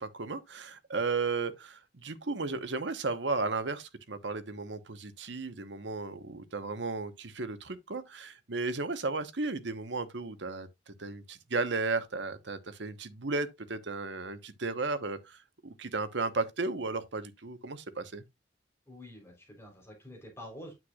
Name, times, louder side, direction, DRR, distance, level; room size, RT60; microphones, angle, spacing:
voice 1, 0.0-10.7 11.0-18.2, right 3 dB, 65° right, 1.1 m, -34 dB
voice 2, 18.9-20.8, equal, 15° left, 3.7 m, -48 dB
9.3 x 7.9 x 2.4 m
head